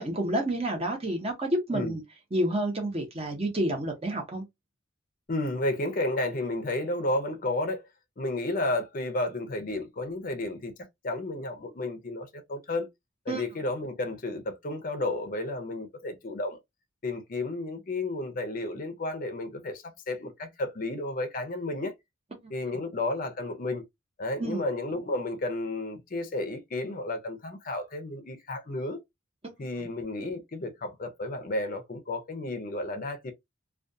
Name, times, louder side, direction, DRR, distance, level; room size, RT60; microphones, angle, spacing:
voice 1, 0.0-2.0 2.3-4.4 13.3-13.4 22.4-22.5 24.4-24.6 29.4-29.5, right 1 dB, 30° right, 0.8 m, -29 dB
voice 2, 5.3-7.9 8.2-10.7 11.0-12.9 13.3-16.6 17.0-21.9 22.5-23.8 24.2-29.0 29.6-33.3, left 2 dB, 45° left, 0.5 m, -32 dB
2.3 x 2.3 x 2.6 m
head